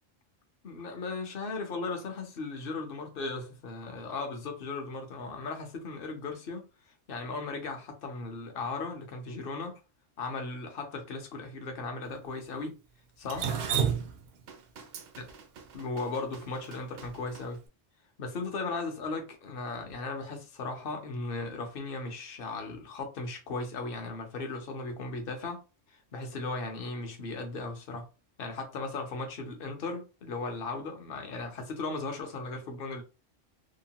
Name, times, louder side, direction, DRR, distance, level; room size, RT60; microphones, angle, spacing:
voice 1, 0.6-6.7 7.1-9.8 10.2-12.8 13.2-13.8 15.2-15.3 15.7-17.6 18.2-28.1 28.4-33.0, left 3 dB, 55° left, 0.8 m, -37 dB
Drip, 13.3-17.4, right 7 dB, 60° right, 0.7 m, -32 dB
2.9 x 2.1 x 2.7 m
omnidirectional pair, 1.2 m